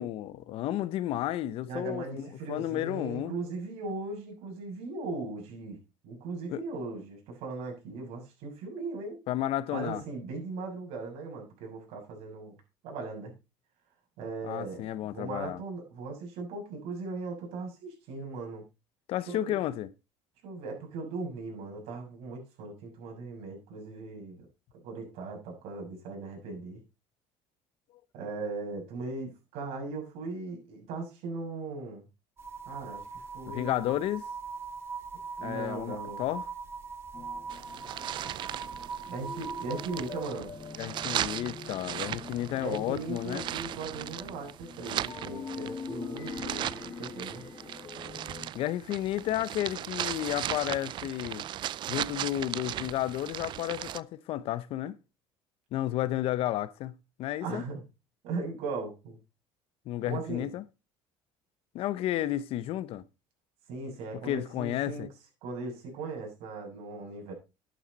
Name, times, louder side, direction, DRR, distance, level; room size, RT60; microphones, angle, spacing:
voice 1, 0.0-3.3 6.5-6.6 9.3-10.0 14.4-15.6 19.1-19.9 33.5-34.2 35.4-36.4 40.8-43.4 48.5-51.5 51.9-54.9 55.7-56.9 57.2-57.6 59.9-60.6 61.7-63.0 64.2-65.1, left 13 dB, 60° left, 0.9 m, -32 dB
voice 2, 1.7-5.8 6.0-9.2 9.7-12.6 12.8-13.3 14.2-14.9 15.1-18.6 19.3-19.6 20.4-24.4 24.7-26.8 28.1-32.0 32.6-33.9 35.4-36.2 39.1-40.5 42.6-47.4 57.4-57.8 58.2-59.2 60.0-60.5 63.7-65.1 65.4-67.3, right 3 dB, 75° right, 6.7 m, -38 dB
sound 1, 32.4-40.3, right 5 dB, 25° right, 2.5 m, -41 dB
sound 2, 37.1-48.5, left 5 dB, 30° left, 1.3 m, -44 dB
sound 3, 37.5-54.0, right 12 dB, 45° right, 0.5 m, -37 dB
11.5 x 9.2 x 4.1 m
cardioid pair, 125°, 11 cm